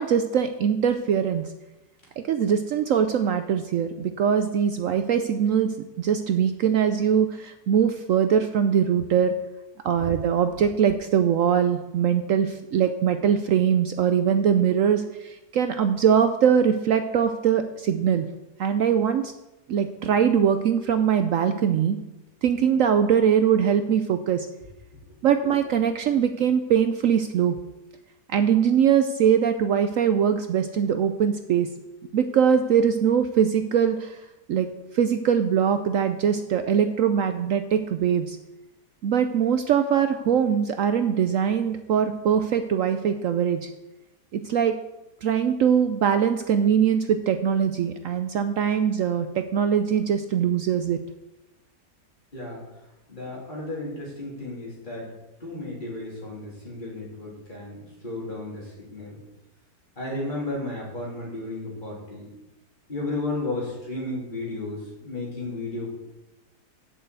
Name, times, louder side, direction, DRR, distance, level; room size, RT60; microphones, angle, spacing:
voice 1, 0.0-1.5 2.2-9.3 9.8-18.2 18.6-19.3 19.7-22.0 22.4-24.5 25.2-27.5 28.3-31.7 32.1-34.2 34.5-34.7 34.9-38.4 39.0-43.7 44.3-44.7 45.2-51.0, right 8 dB, 70° right, 9 dB, 0.8 m, -22 dB
voice 2, 52.3-52.6 53.1-55.1 55.4-59.2 60.0-62.3 62.9-65.9, left 2 dB, 25° left, -4 dB, 3.5 m, -33 dB
7.5 x 6.7 x 8.1 m, 1.0 s
omnidirectional pair, 1.8 m